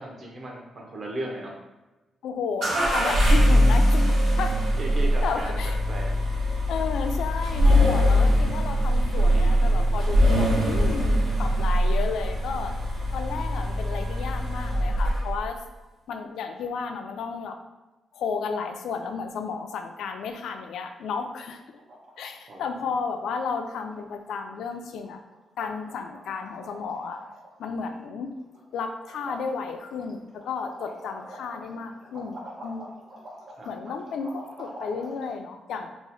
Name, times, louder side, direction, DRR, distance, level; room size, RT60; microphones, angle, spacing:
voice 1, 0.0-1.5 3.3-3.7 4.8-6.2 22.5-22.6 33.6-33.7, right 2 dB, 40° right, 0 dB, 0.6 m, -36 dB
voice 2, 2.2-4.6 5.2-5.8 6.7-12.7 13.1-15.6 16.1-17.6 18.1-21.8 22.2-25.2 25.6-27.2 27.6-28.3 28.7-33.0 33.7-35.9, left 5 dB, 85° left, 6 dB, 0.3 m, -33 dB
sound 1, 2.6-15.5, equal, 85° right, 1.1 m, -22 dB
sound 2, 20.1-20.6 20.9-21.0 21.2-21.5 21.7-22.6 22.8-23.0 23.3-23.4 23.7-24.3 24.6-24.7 25.0-25.4 25.6-27.6 27.9-28.7 29.0-35.3, right 1 dB, 55° right, 1.0 m, -45 dB
2.9 x 2.0 x 3.9 m, 1.1 s
cardioid pair, 145°, 0 cm